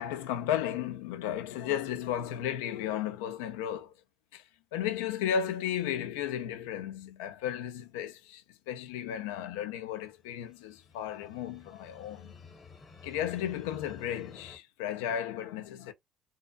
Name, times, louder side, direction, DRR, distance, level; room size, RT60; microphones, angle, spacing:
voice 1, 0.0-3.9 4.3-4.4 4.7-12.3 13.0-15.9, left 9 dB, 90° left, 0.3 m, -34 dB
sound 1, 10.0-14.6, left 5 dB, 40° left, 0.9 m, -53 dB
2.5 x 2.2 x 2.2 m
supercardioid pair, 80°, 0 cm